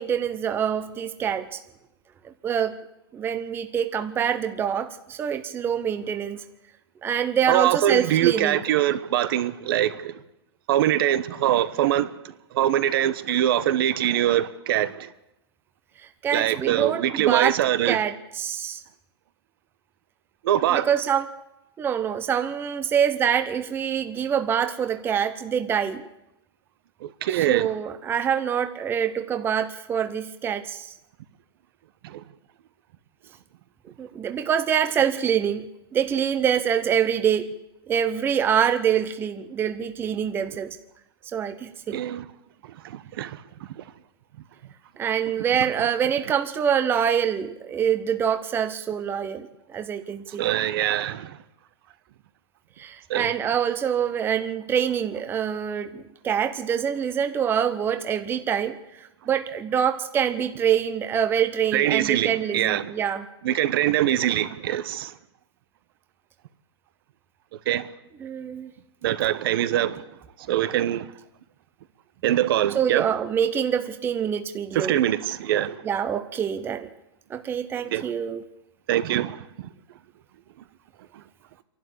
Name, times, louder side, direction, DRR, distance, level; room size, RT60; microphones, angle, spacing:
voice 1, 0.0-1.6 2.2-2.7 3.1-6.4 7.0-8.6 16.2-17.6 17.8-18.8 20.7-21.3 21.8-26.1 27.5-30.9 34.0-37.5 37.9-40.8 41.3-42.0 45.0-50.4 52.8-63.2 68.2-68.7 72.7-75.0 75.8-76.9 77.3-78.4, right 8 dB, 15° right, 0.9 m, -25 dB
voice 2, 7.5-10.2 10.7-12.1 12.5-15.1 16.3-18.0 20.4-20.9 27.0-27.7 32.0-32.2 41.9-42.2 42.6-43.4 43.7-43.8 50.3-51.4 53.1-53.3 61.7-62.9 63.4-65.2 67.6-67.9 69.0-70.0 70.4-71.1 72.2-73.1 74.7-75.8 77.9-78.1 78.9-79.7 81.1-81.2, right 12 dB, 55° right, 1.2 m, -23 dB
27.0 x 12.0 x 8.6 m
hypercardioid pair, 150°, 14 cm